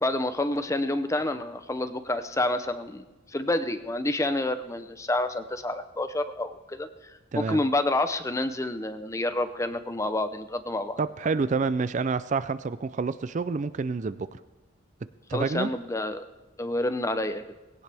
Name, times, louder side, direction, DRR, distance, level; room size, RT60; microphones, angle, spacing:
voice 1, 0.0-11.0 15.3-16.2 16.6-17.4, left 1 dB, 15° left, 10 dB, 0.6 m, -28 dB
voice 2, 11.0-14.3 15.3-15.7, right 4 dB, 40° right, 13 dB, 0.4 m, -28 dB
19.5 x 17.0 x 3.4 m, 1.1 s
head